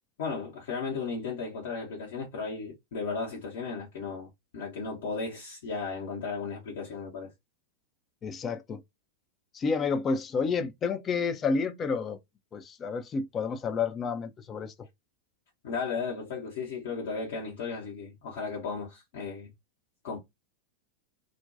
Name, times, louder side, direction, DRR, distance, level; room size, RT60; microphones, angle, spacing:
voice 1, 0.2-7.3 15.6-19.5 20.0-20.2, left 4 dB, 55° left, 0.8 m, -35 dB
voice 2, 8.2-8.8 9.5-12.2 12.5-14.7, left 5 dB, 25° left, 0.4 m, -30 dB
2.5 x 2.2 x 2.5 m
figure-of-eight pair, 90°, 0 cm